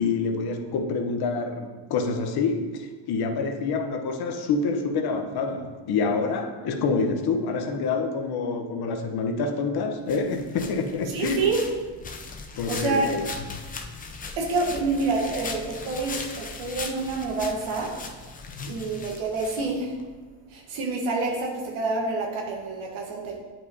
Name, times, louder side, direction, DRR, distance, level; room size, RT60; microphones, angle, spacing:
voice 1, 0.0-11.4 12.6-13.6 18.5-18.8, left 4 dB, 50° left, 5 dB, 0.9 m, -27 dB
sound 1, 10.1-20.1, left 4 dB, 20° left, 0.5 m, -39 dB
voice 2, 11.1-11.6 12.7-13.1 14.4-17.9 18.7-19.9 20.5-23.4, right 3 dB, 70° right, -1 dB, 1.4 m, -27 dB
8.9 x 5.5 x 2.8 m, 1.4 s
cardioid pair, 120°, 49 cm